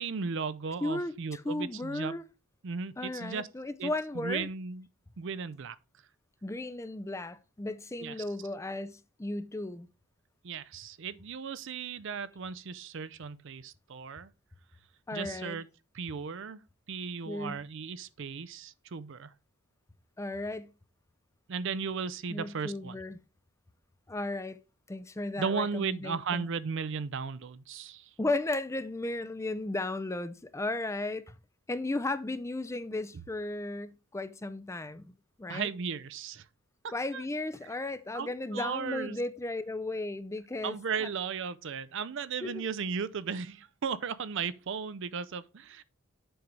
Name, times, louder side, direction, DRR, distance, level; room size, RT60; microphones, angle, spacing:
voice 1, 0.0-2.1 2.6-3.5 3.8-4.9 5.2-5.8 8.0-8.2 10.4-14.3 15.1-15.7 15.9-16.6 16.9-19.3 21.5-23.0 25.4-28.1 35.5-36.4 36.8-37.2 38.1-39.2 40.6-45.8, right 5 dB, 60° right, 0.5 m, -36 dB
voice 2, 0.8-2.2 3.0-4.5 6.4-9.9 15.1-15.6 17.3-17.6 20.2-20.7 22.3-23.2 24.1-24.6 24.9-26.5 28.2-31.3 31.7-35.7 36.9-40.8 42.4-42.6, left 2 dB, 15° left, 0.4 m, -35 dB
7.8 x 5.4 x 4.6 m
head